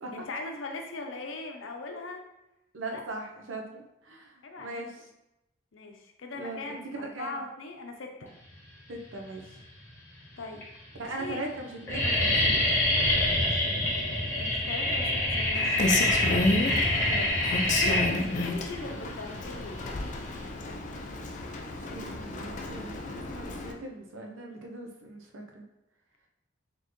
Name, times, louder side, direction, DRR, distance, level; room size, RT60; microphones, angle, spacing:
voice 1, 0.1-2.2 2.9-3.0 4.4-4.8 5.7-8.3 10.4-10.7 11.2-11.4 14.2-15.9 17.7-19.9, left 2 dB, 85° left, 3 dB, 0.6 m, -40 dB
voice 2, 2.7-5.0 6.3-7.4 8.9-9.6 11.0-12.8 16.5-17.3 21.8-25.7, right 2 dB, 85° right, 1 dB, 0.7 m, -40 dB
sound 1, 9.3-9.8 10.5-10.6 10.9-11.3 11.5-20.5, left 1 dB, 15° left, 1.0 m, -26 dB
Rain, 15.5-23.7, left 2 dB, 40° left, 0.4 m, -32 dB
4.2 x 3.0 x 3.0 m, 0.90 s
head